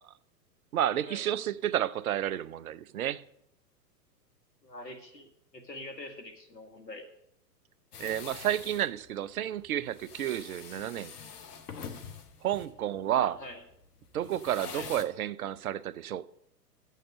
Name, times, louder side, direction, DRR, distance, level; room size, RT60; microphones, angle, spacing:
voice 1, 0.7-3.2 8.0-11.1 12.4-13.4 14.1-16.3, right 11 dB, 60° right, 0.5 m, -31 dB
voice 2, 4.6-7.0 13.2-13.6 14.7-14.9, left 2 dB, 80° left, 1.6 m, -45 dB
sound 1, 7.9-15.0, left 6 dB, 65° left, 1.1 m, -45 dB
7.5 x 6.5 x 6.6 m
figure-of-eight pair, 105°, 49 cm